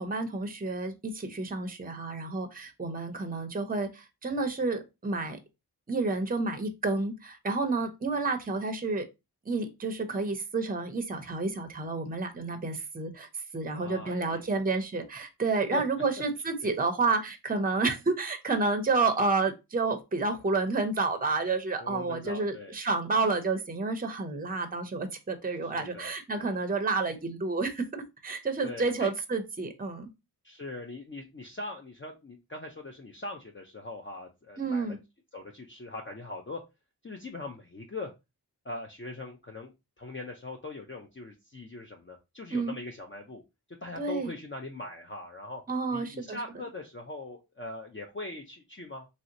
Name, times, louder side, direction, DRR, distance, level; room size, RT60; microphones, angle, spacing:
voice 1, 0.0-5.4 5.9-9.1 9.5-13.3 13.5-30.1 34.6-35.0 42.5-42.7 44.0-44.3 45.7-46.4, right 3 dB, 20° right, 7 dB, 0.6 m, -30 dB
voice 2, 13.7-14.6 15.7-15.8 21.8-22.8 25.7-26.6 28.6-29.1 30.4-35.0 35.3-36.6 37.0-38.1 38.6-43.4 43.8-45.6 45.9-49.1, left 2 dB, 30° left, 2 dB, 0.5 m, -41 dB
3.1 x 2.8 x 2.5 m, 0.24 s
wide cardioid pair, 50°, 40 cm